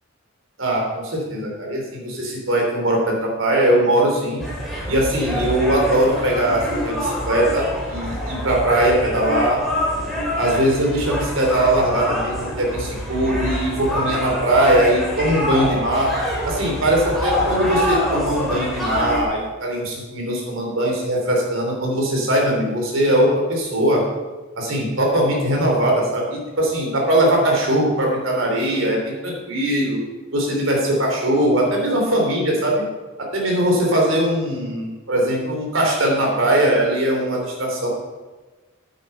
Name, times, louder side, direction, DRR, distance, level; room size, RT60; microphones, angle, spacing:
voice 1, 0.6-4.4 4.9-9.6 10.4-16.1 16.4-24.0 24.6-30.0 30.3-32.8 33.2-37.9, right 1 dB, 70° right, -1 dB, 3.3 m, -20 dB
sound 1, 4.4-19.2, equal, ahead, 2.8 m, -25 dB
9.2 x 9.0 x 5.5 m, 1.2 s
head